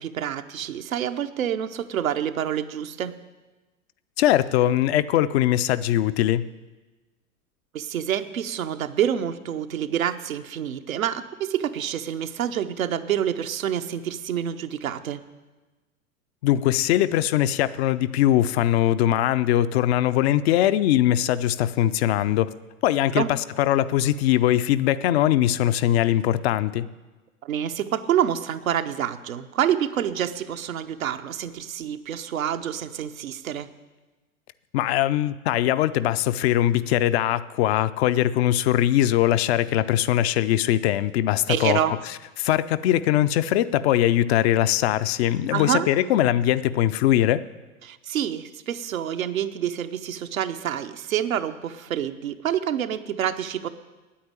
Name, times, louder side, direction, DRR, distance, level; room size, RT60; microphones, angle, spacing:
voice 1, 0.0-3.2 7.7-15.2 23.1-23.3 27.4-33.7 41.5-41.9 45.5-45.9 47.8-53.7, right 10 dB, 75° right, 9 dB, 0.8 m, -27 dB
voice 2, 4.2-6.4 16.4-22.5 22.8-26.9 34.7-41.8 42.4-47.4, left 12 dB, 50° left, 13 dB, 0.6 m, -21 dB
9.3 x 8.6 x 9.1 m, 1.2 s
figure-of-eight pair, 90°, 41 cm